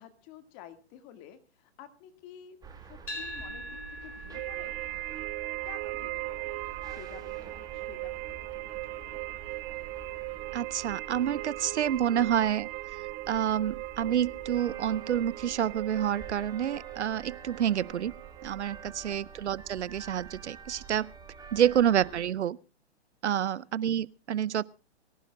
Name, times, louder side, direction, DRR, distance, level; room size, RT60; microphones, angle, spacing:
voice 1, 0.0-4.8 5.6-6.6 6.9-9.2 18.8-19.2 21.6-21.9 23.3-23.7, left 10 dB, 35° left, 2.0 m, -52 dB
sound 1, 2.6-22.2, right 5 dB, 10° right, 2.2 m, -48 dB
sound 2, 3.1-11.3, equal, 85° left, 4.3 m, -46 dB
sound 3, 4.3-18.8, right 21 dB, 30° right, 1.4 m, -39 dB
voice 2, 10.5-12.7 13.3-18.1 18.4-21.1 21.5-22.6 23.2-24.6, right 10 dB, 80° right, 0.7 m, -28 dB
23.5 x 15.5 x 2.3 m
hypercardioid pair, 130°, 34 cm